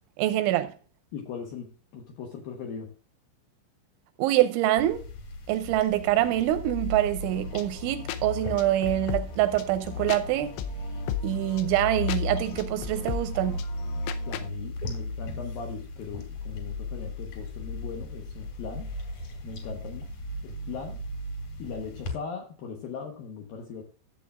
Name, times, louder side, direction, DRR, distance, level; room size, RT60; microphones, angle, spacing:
voice 1, 0.2-0.7 4.2-5.0 5.5-10.5 11.2-13.6, right 14 dB, 85° right, 2.8 m, -25 dB
voice 2, 1.1-2.9 14.0-18.9 19.4-20.1 20.4-21.0 21.6-23.8, left 5 dB, 75° left, 2.2 m, -39 dB
sound 1, 4.8-22.1, left 2 dB, 45° left, 3.0 m, -36 dB
sound 2, 7.2-14.5, left 10 dB, 90° left, 3.2 m, -38 dB
14.0 x 8.0 x 2.4 m
omnidirectional pair, 5.7 m